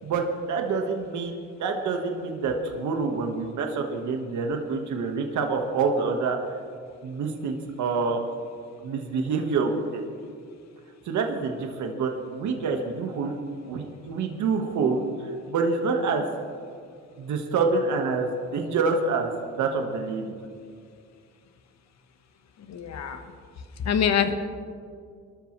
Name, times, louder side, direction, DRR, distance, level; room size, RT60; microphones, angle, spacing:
voice 1, 0.0-6.4 7.0-8.2 8.8-10.0 11.0-13.3 13.6-16.2 17.2-19.3 19.6-20.4, right 4 dB, 75° right, 3 dB, 1.6 m, -27 dB
voice 2, 22.7-23.2 23.8-24.3, left 8 dB, 60° left, 7 dB, 1.4 m, -24 dB
23.5 x 13.5 x 3.3 m, 2.2 s
cardioid pair, 90°, 30 cm